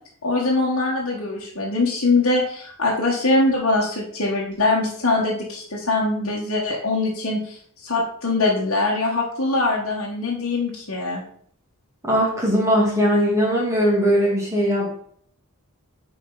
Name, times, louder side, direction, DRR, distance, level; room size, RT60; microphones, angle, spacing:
voice 1, 0.2-11.2, left 2 dB, 65° left, -5 dB, 1.4 m, -22 dB
voice 2, 12.0-15.0, equal, 15° right, -4 dB, 2.5 m, -20 dB
8.5 x 4.6 x 3.9 m, 0.62 s
head